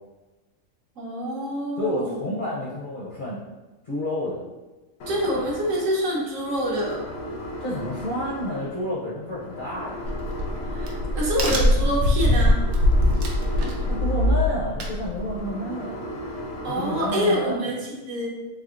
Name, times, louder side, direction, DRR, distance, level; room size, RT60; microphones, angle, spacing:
voice 1, 1.0-2.3 5.1-7.0 10.7-12.6 16.6-18.4, equal, 65° right, -4 dB, 1.2 m, -26 dB
voice 2, 1.8-3.4 3.8-4.4 7.6-10.0 13.9-16.0 16.7-17.7, left 1 dB, 50° left, -7 dB, 0.6 m, -29 dB
sound 1, 5.0-17.6, left 1 dB, 80° left, 1.0 m, -37 dB
Crack, 10.0-15.5, left 1 dB, 85° right, 1.1 m, -22 dB
3.5 x 3.3 x 2.4 m, 1.2 s
omnidirectional pair, 1.5 m